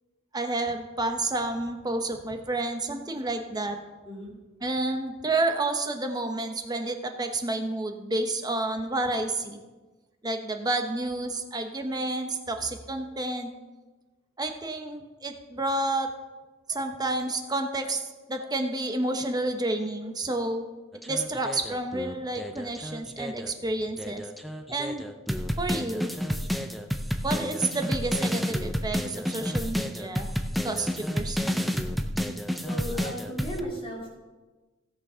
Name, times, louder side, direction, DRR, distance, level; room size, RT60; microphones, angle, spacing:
voice 1, 0.3-3.8 4.6-9.6 10.2-13.5 14.4-16.1 16.7-18.0 18.3-20.7 21.1-24.3 24.7-25.0 25.6-26.1 27.2-30.3 30.6-31.7, right 2 dB, 20° right, 5 dB, 1.0 m, -30 dB
sound 1, 20.9-23.5 24.0-33.6, equal, ahead, 0.6 m, -30 dB
voice 2, 32.6-34.1, equal, 30° left, -4 dB, 3.2 m, -36 dB
16.5 x 6.2 x 5.6 m, 1.2 s
head